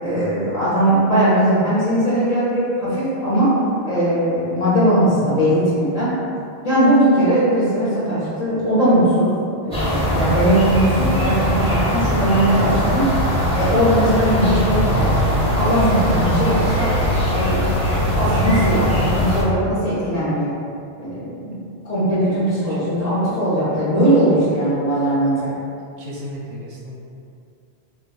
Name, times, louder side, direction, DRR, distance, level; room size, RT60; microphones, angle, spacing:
voice 1, 0.0-3.5 3.9-6.1 6.6-9.3 9.6-13.3 13.6-16.9 17.3-20.6 21.0-25.5, right 1 dB, 45° left, -12 dB, 0.7 m, -19 dB
sound 1, 9.7-19.4, equal, 5° left, 0.6 m, -20 dB
voice 2, 25.8-26.9, equal, 60° right, -4 dB, 0.6 m, -35 dB
2.3 x 2.2 x 3.9 m, 2.5 s
omnidirectional pair, 1.1 m